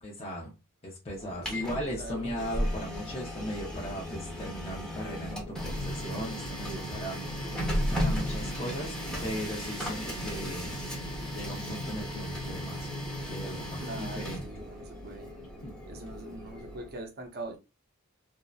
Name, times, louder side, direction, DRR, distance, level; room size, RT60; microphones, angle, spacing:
voice 1, 0.0-0.5 0.8-10.8 11.2-12.9 13.2-14.4 15.6-15.7, equal, 30° left, 0.6 m, -38 dB
Printer, 1.2-16.9, equal, 5° left, 0.9 m, -35 dB
voice 2, 1.4-2.4 13.8-15.3 15.9-17.6, right 1 dB, 45° right, 0.6 m, -42 dB
2.6 x 2.1 x 2.3 m
head